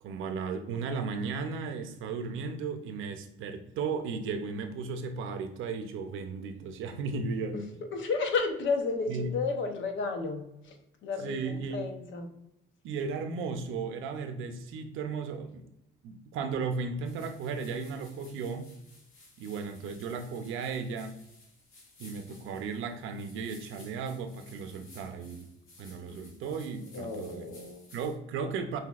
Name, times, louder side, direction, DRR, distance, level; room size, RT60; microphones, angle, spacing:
voice 1, 0.0-7.6 9.1-9.3 11.2-11.9 12.8-15.7 16.0-18.7 19.4-21.1 22.0-25.5 25.8-27.5 27.9-28.8, right 5 dB, 90° right, 7 dB, 0.6 m, -35 dB
voice 2, 7.9-10.8 11.0-12.3 26.1-26.3 26.9-27.8, left 4 dB, 75° left, 5 dB, 0.8 m, -32 dB
sound 1, 17.0-28.2, left 2 dB, 90° left, 1.4 m, -56 dB
5.7 x 2.7 x 2.4 m, 0.83 s
cardioid pair, 90°, 20 cm